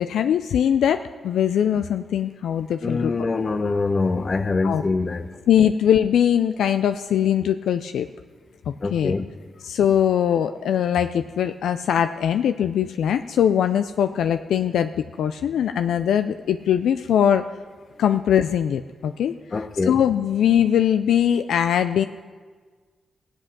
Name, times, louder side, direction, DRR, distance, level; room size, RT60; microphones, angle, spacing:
voice 1, 0.0-3.1 4.6-4.8 5.5-8.1 8.7-9.1 9.6-14.9 15.2-17.5 18.0-19.4 19.8-22.0, left 9 dB, 80° left, 0.3 m, -21 dB
voice 2, 2.8-5.4 8.8-9.3 19.5-20.0, left 3 dB, 45° left, 0.8 m, -24 dB
17.0 x 7.9 x 6.0 m
cardioid pair, 60°, 0 cm